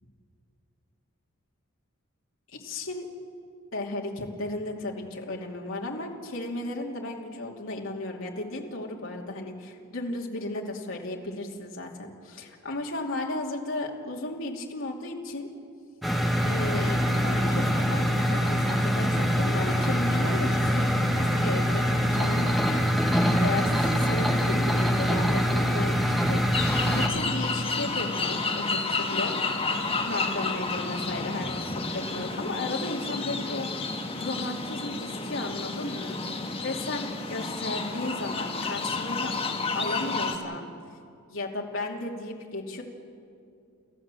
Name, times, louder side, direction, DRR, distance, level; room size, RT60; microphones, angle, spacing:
voice 1, 2.5-3.1 3.7-15.5 16.4-21.8 22.1-22.8 23.4-29.4 30.0-36.2 36.6-39.3 39.7-40.7 41.3-42.8, left 2 dB, 70° left, -1 dB, 2.6 m, -34 dB
sound 1, 16.0-27.1, equal, ahead, 1.5 m, -24 dB
sound 2, 26.5-40.4, left 3 dB, 25° left, 2.0 m, -31 dB
29.5 x 14.5 x 7.6 m, 2.4 s
head